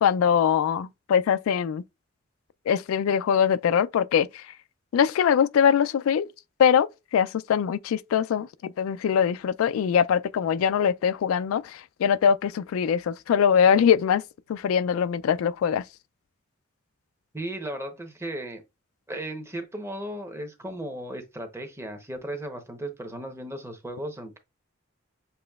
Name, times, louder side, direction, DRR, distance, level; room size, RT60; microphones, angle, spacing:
voice 1, 0.0-1.8 2.7-4.4 4.9-6.3 6.6-14.2 14.5-15.8, left 8 dB, 90° left, 0.3 m, -22 dB
voice 2, 17.3-18.6 19.1-24.4, right 1 dB, 15° right, 0.8 m, -36 dB
6.9 x 3.0 x 2.3 m
head